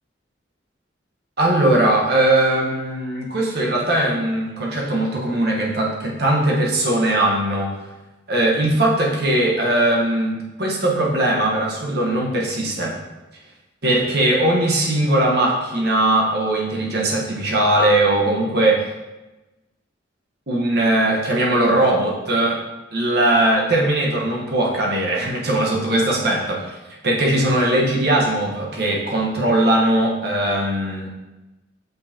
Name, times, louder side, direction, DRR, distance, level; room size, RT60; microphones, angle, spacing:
voice 1, 1.4-7.8 8.3-13.0 13.8-18.8 20.5-22.6 22.9-26.8 27.0-31.1, right 1 dB, 55° right, -3 dB, 1.2 m, -19 dB
6.4 x 5.4 x 2.9 m, 1.1 s
head